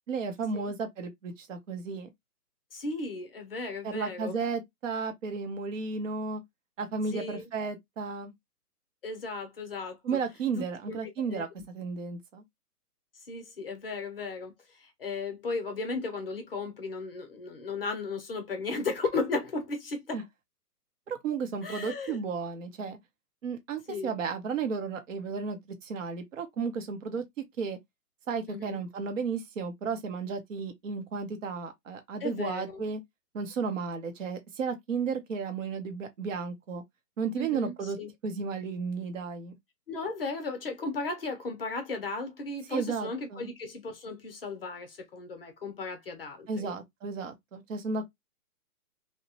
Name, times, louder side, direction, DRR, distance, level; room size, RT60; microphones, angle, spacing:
voice 1, 0.1-2.1 3.8-6.4 6.8-8.3 10.0-12.4 20.1-20.2 21.1-23.0 23.4-27.2 27.6-27.8 28.3-33.0 33.3-36.8 37.2-38.0 38.2-39.6 42.7-43.5 46.5-48.1, right 5 dB, 55° right, 0.7 m, -33 dB
voice 2, 2.7-4.3 7.1-7.4 9.0-10.2 10.9-11.5 13.3-20.2 21.6-22.2 23.9-24.1 28.5-28.8 32.2-32.8 37.4-38.1 39.9-46.8, left 3 dB, 40° left, 0.7 m, -35 dB
2.9 x 2.1 x 2.7 m
hypercardioid pair, 165°, 46 cm